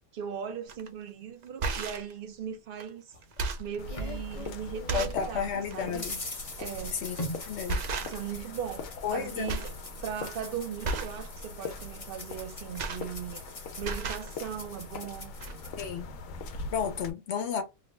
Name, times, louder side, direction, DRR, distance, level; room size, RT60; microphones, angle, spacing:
voice 1, 0.1-3.1 3.6-6.1 6.6-7.1 8.0-9.7 10.0-13.4 13.8-15.3, right 8 dB, 55° right, 0.7 m, -38 dB
sound 1, 0.7-0.9 1.4-2.1 2.8-2.9 3.2-3.8 4.4-4.5 4.9-5.3 5.7-5.8 7.0-7.2 7.7-8.4 8.7-9.2 9.5-9.8 10.1-10.4 10.8-11.2 12.4-13.5 13.8-14.3 15.1-15.2 15.4-15.5, right 3 dB, 90° right, 0.3 m, -34 dB
sound 2, 3.1-5.0 5.3-15.9, left 1 dB, 30° left, 0.7 m, -43 dB
sound 3, 3.8-17.1, left 3 dB, 85° left, 1.0 m, -42 dB
voice 2, 4.9-6.2 6.9-7.2 7.5-7.8 9.0-9.5 15.7-16.1 16.7-17.6, left 7 dB, 60° left, 1.0 m, -32 dB
2.9 x 2.0 x 3.2 m
omnidirectional pair, 1.3 m